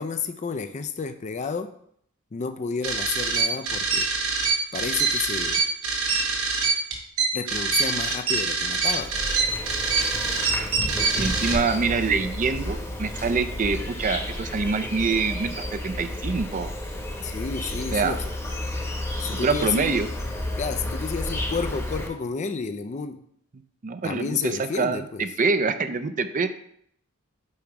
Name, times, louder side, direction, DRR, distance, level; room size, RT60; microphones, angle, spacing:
voice 1, 0.0-1.7 2.3-4.1 4.7-5.6 7.3-9.1 17.2-18.2 19.2-20.0 20.6-23.2 24.0-25.3, left 5 dB, 35° left, 9 dB, 0.4 m, -31 dB
sound 1, 2.8-11.5, right 4 dB, 85° right, 1.6 m, -24 dB
Insect, 8.8-22.1, left 1 dB, 15° left, 1.0 m, -32 dB
voice 2, 11.2-16.7 17.9-18.2 19.4-20.1 23.8-26.5, right 4 dB, 40° right, 9 dB, 0.5 m, -25 dB
8.5 x 3.1 x 4.7 m, 0.67 s
head